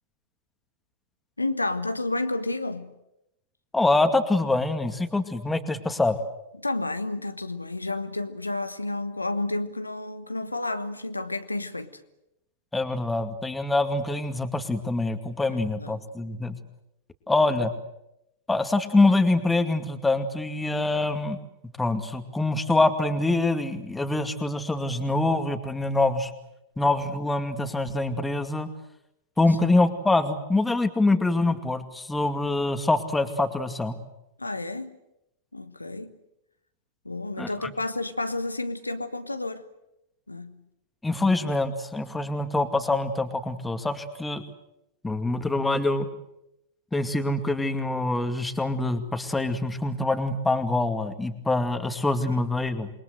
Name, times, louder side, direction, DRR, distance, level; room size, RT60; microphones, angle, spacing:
voice 1, 1.4-2.9 6.6-12.0 15.5-15.9 34.4-34.9 35.5-36.1 37.0-39.6 40.3-40.6, left 2 dB, 85° left, 1.4 m, -31 dB
voice 2, 3.7-6.2 12.7-16.6 17.3-17.7 18.5-21.4 21.8-26.3 26.8-28.7 29.4-33.9 37.4-37.7 41.0-44.4 45.0-46.1 46.9-52.9, left 2 dB, 10° left, 2.3 m, -25 dB
28.0 x 22.0 x 7.9 m
figure-of-eight pair, 95°, 0 cm